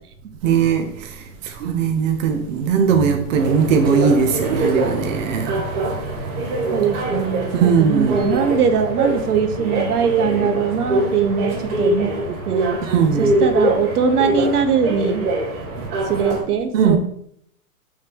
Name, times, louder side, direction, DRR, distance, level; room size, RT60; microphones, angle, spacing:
voice 1, 0.4-5.6 7.5-8.3 12.8-13.4 16.7-17.0, right 6 dB, 55° right, 1.0 m, -19 dB
sound 1, 3.3-16.4, right 2 dB, 35° right, 3.1 m, -23 dB
voice 2, 6.7-12.8 13.2-15.3 16.0-17.0, right 6 dB, 80° right, 1.2 m, -21 dB
6.4 x 3.6 x 6.2 m
hypercardioid pair, 155°, 45 cm